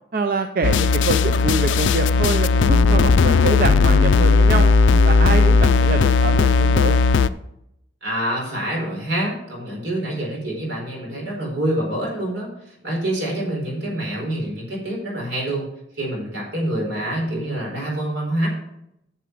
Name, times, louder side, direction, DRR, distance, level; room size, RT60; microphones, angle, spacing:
voice 1, 0.1-4.7 5.0-7.0, right 3 dB, 50° right, 8 dB, 0.5 m, -25 dB
sound 1, 0.6-7.3, left 4 dB, 80° left, 0.4 m, -16 dB
voice 2, 8.0-12.5 12.8-15.7 16.0-18.5, right 1 dB, 75° right, -2 dB, 4.5 m, -26 dB
9.7 x 6.9 x 4.7 m, 0.78 s
head